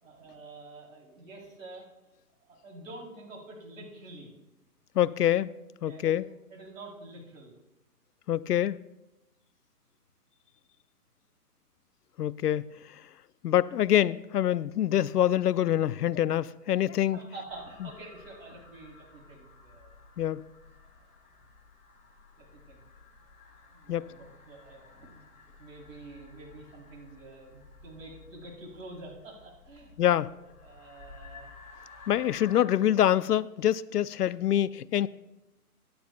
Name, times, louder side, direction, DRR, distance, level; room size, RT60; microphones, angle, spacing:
voice 1, 0.0-1.9 2.5-4.3 5.9-6.2 6.5-7.5 17.1-20.0 21.0-21.1 22.4-22.8 23.7-25.2 25.6-29.9 30.3-30.4 30.6-31.6, right 2 dB, 55° right, 3.4 m, -47 dB
voice 2, 5.0-5.5 5.8-6.3 8.3-8.8 12.2-13.0 13.4-17.2 20.2-20.4 23.9-24.1 30.0-30.3 32.1-35.1, left 11 dB, 75° left, 0.5 m, -25 dB
sound 1, 17.5-32.6, left 4 dB, 15° left, 1.5 m, -53 dB
17.0 x 11.0 x 2.2 m
hypercardioid pair, 150°, 47 cm